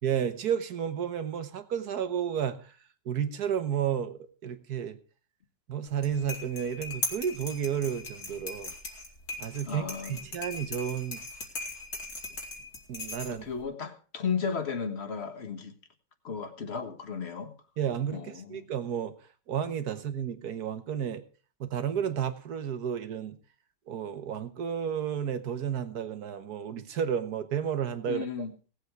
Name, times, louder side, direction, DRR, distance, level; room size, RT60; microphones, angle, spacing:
voice 1, 0.0-2.6 3.1-5.0 5.7-8.7 9.4-11.2 12.9-13.4 17.8-19.1 19.5-21.2 21.6-23.4 23.9-28.3, right 8 dB, 65° right, 10 dB, 1.6 m, -32 dB
sound 1, 5.9-13.6, left 3 dB, 65° left, 2.9 m, -39 dB
voice 2, 9.6-10.2 13.2-15.7 16.2-17.5 18.1-18.7 28.1-28.5, left 6 dB, 40° left, 7 dB, 1.6 m, -34 dB
17.5 x 8.1 x 4.7 m, 0.37 s
omnidirectional pair, 1.8 m